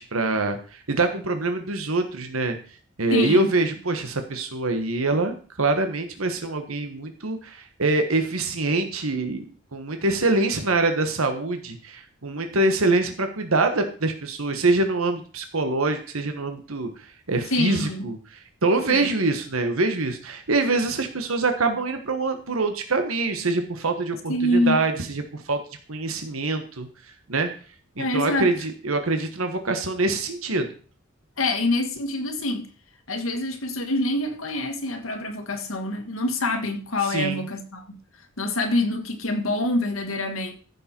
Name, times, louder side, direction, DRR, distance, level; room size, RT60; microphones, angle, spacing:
voice 1, 0.0-2.6 3.0-9.5 9.7-25.6 25.9-26.9 27.3-27.5 28.0-30.7 37.1-37.4, right 2 dB, 80° right, 1.4 m, -25 dB
voice 2, 3.1-3.5 17.5-18.1 18.9-19.1 24.3-24.8 28.0-28.5 31.4-32.7 33.1-38.0 38.4-40.5, left 1 dB, 70° left, 2.0 m, -25 dB
15.0 x 6.5 x 4.5 m
head